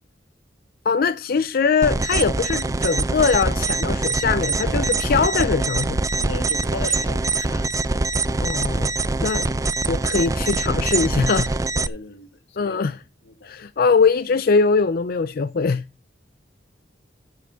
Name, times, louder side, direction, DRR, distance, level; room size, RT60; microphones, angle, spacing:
voice 1, 0.9-6.1 8.4-8.9 9.2-11.6 12.6-13.0 13.4-15.8, left 5 dB, 55° left, 0.4 m, -22 dB
sound 1, 1.8-11.9, right 3 dB, 20° right, 0.4 m, -23 dB
voice 2, 4.6-5.3 6.2-8.0 11.7-12.8 13.2-13.5, left 3 dB, 85° left, 1.4 m, -37 dB
10.5 x 5.7 x 6.0 m
head